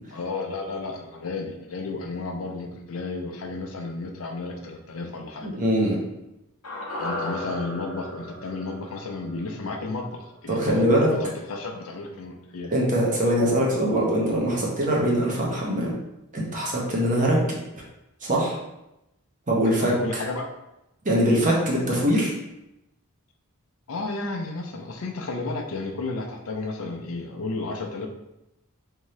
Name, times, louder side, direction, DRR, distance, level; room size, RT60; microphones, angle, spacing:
voice 1, 0.1-5.5 7.0-12.7 19.6-20.5 23.9-28.1, left 3 dB, 65° left, 2 dB, 0.5 m, -33 dB
voice 2, 5.4-6.0 10.5-11.1 12.7-15.9 16.3-17.4 18.2-18.6 19.5-20.2 21.0-22.3, equal, 35° right, -3 dB, 0.9 m, -22 dB
sound 1, 6.6-11.0 11.2-11.3, left 1 dB, 90° left, 0.8 m, -36 dB
3.5 x 2.7 x 3.1 m, 0.91 s
head